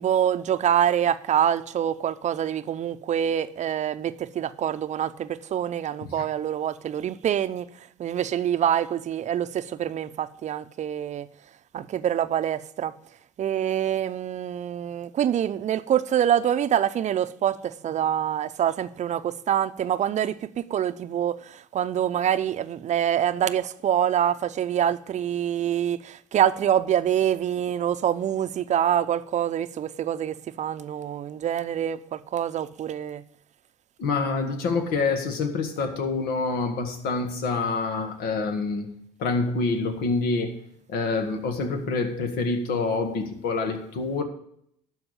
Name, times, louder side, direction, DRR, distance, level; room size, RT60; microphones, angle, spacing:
voice 1, 0.0-11.3 11.7-13.0 13.4-33.2, right 10 dB, 45° right, 0.7 m, -25 dB
voice 2, 34.0-38.9 39.2-40.6 40.9-44.2, left 3 dB, 70° left, 1.8 m, -26 dB
12.0 x 4.8 x 8.4 m
hypercardioid pair, 70°, 17 cm